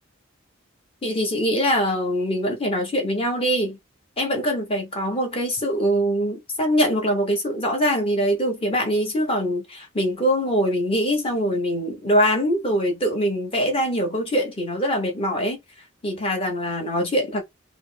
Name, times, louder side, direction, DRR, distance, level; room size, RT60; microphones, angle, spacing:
voice 1, 1.0-3.8 4.2-15.6 16.0-17.4, equal, 25° left, 1.1 m, -23 dB
3.4 x 2.1 x 3.8 m
head